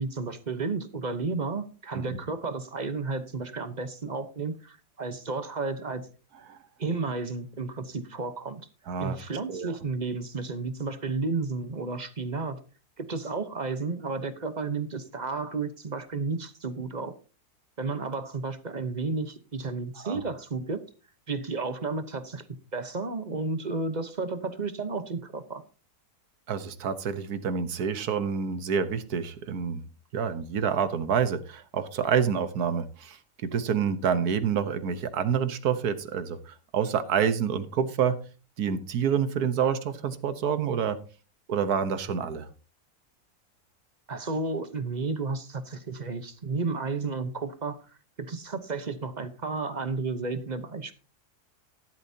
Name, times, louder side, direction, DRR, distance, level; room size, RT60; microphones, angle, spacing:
voice 1, 0.0-6.0 6.8-8.6 9.0-12.6 13.0-17.1 17.8-20.8 21.3-22.4 22.7-25.6 44.1-47.8 48.2-50.9, right 3 dB, 35° right, 10 dB, 0.9 m, -32 dB
voice 2, 8.9-9.2 9.5-9.7 20.0-20.2 26.5-29.8 30.1-38.2 38.6-41.0 41.5-42.5, right 7 dB, 75° right, 12 dB, 1.5 m, -28 dB
14.0 x 12.0 x 2.8 m, 0.34 s
omnidirectional pair, 1.6 m